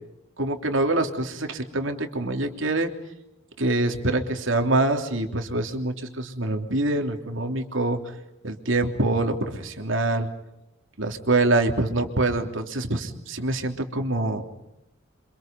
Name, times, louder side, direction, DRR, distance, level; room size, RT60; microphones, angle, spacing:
voice 1, 0.4-2.9 3.6-8.0 8.4-10.3 11.0-14.4, right 2 dB, 65° right, 5 dB, 3.3 m, -25 dB
28.5 x 27.0 x 5.4 m, 0.89 s
head